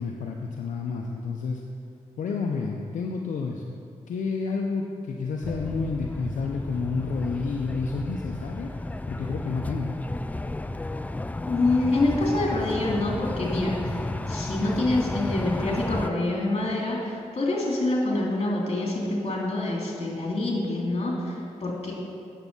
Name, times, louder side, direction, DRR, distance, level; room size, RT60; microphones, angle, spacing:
voice 1, 0.0-1.6 2.2-3.7 4.1-8.7 9.1-10.0, left 4 dB, 80° left, 1 dB, 0.6 m, -30 dB
sound 1, 5.4-16.1, left 2 dB, 10° left, 0.4 m, -33 dB
voice 2, 11.5-21.9, left 2 dB, 50° left, -2 dB, 2.7 m, -26 dB
9.1 x 7.2 x 5.4 m, 2.5 s
cardioid pair, 60°, 13 cm